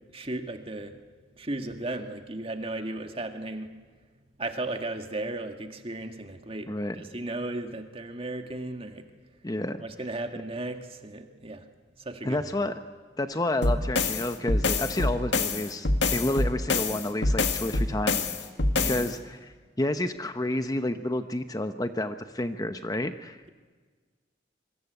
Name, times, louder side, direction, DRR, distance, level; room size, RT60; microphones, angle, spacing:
voice 1, 0.1-0.9 1.4-3.7 4.4-9.0 9.8-11.6 12.0-12.5 18.8-19.1, right 2 dB, 30° right, 6 dB, 1.8 m, -35 dB
voice 2, 9.4-9.8 12.2-12.8 13.2-18.3 18.8-23.4, left 1 dB, 20° left, 9 dB, 0.8 m, -30 dB
sound 1, 13.6-19.1, left 3 dB, 75° left, 2.0 m, -26 dB
26.0 x 23.5 x 8.1 m, 1.5 s
head